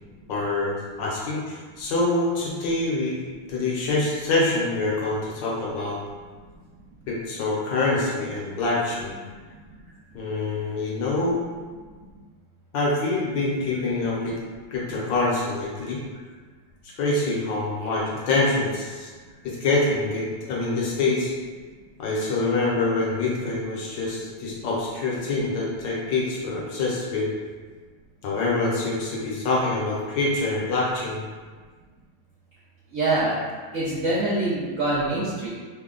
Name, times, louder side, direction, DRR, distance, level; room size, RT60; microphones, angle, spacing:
voice 1, 0.3-3.2 3.5-6.0 7.1-9.2 10.1-11.4 12.7-14.4 14.7-16.0 16.8-19.1 19.4-21.3 22.0-27.3 28.2-31.3, left 2 dB, 70° left, -4 dB, 1.2 m, -25 dB
voice 2, 32.9-33.4 33.7-35.5, right 2 dB, 70° right, -11 dB, 0.8 m, -24 dB
3.5 x 2.1 x 3.6 m, 1.5 s
omnidirectional pair, 2.2 m